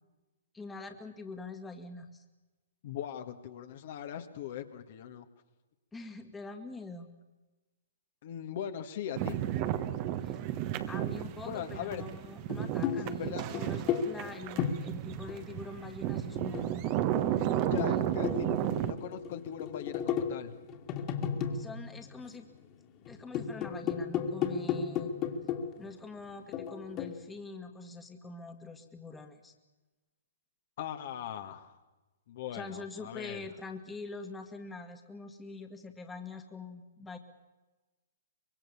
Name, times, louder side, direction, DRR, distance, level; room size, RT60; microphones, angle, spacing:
voice 1, 0.5-2.2 5.9-7.1 10.2-10.4 10.9-16.9 17.4-18.1 21.5-22.5 23.1-25.1 25.8-29.5 32.5-37.2, left 3 dB, 10° left, 5 dB, 1.9 m, -44 dB
voice 2, 2.8-5.3 8.2-9.4 11.4-12.0 13.0-13.4 17.6-18.5 18.8-20.5 30.8-31.8 32.3-33.5, left 10 dB, 55° left, 7 dB, 1.8 m, -40 dB
sound 1, 9.2-18.9, right 12 dB, 35° right, 1.4 m, -33 dB
sound 2, 12.4-15.8 16.4-22.6 23.0-25.9 26.5-27.2, left 7 dB, 30° left, 2.5 m, -35 dB
24.5 x 22.5 x 7.2 m, 1.2 s
hypercardioid pair, 130°, 0 cm